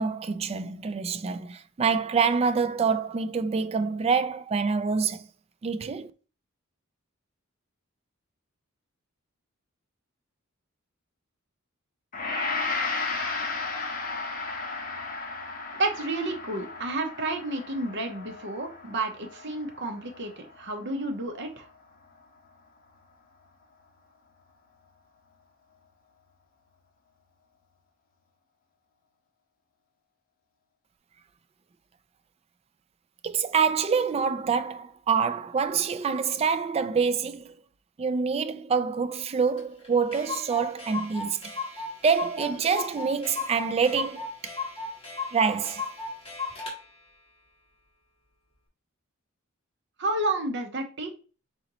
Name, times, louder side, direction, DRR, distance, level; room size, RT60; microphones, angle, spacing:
voice 1, 0.0-5.2 5.6-6.1 33.2-37.6 38.0-41.4 42.0-44.5 45.3-45.9, right 5 dB, 30° right, 0.3 m, -26 dB
Gong, 12.1-21.3, left 4 dB, 45° left, 0.9 m, -34 dB
voice 2, 15.8-21.7 50.0-51.1, right 2 dB, 60° right, 0.9 m, -31 dB
Clock, 39.6-39.7 39.8-39.9 40.1-46.8, left 4 dB, 25° left, 1.9 m, -35 dB
4.1 x 3.9 x 3.0 m
head